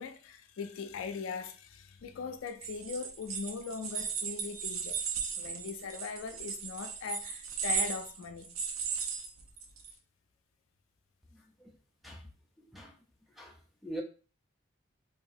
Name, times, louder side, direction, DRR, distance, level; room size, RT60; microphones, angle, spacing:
voice 1, 0.0-5.0 5.4-8.5, left 5 dB, 75° left, 0.4 m, -40 dB
sound 1, 2.5-9.9, right 6 dB, 85° right, 0.5 m, -36 dB
voice 2, 11.3-11.8 12.0-12.3 12.6-13.0 13.3-14.0, right 1 dB, ahead, 0.3 m, -44 dB
2.8 x 2.3 x 2.5 m
head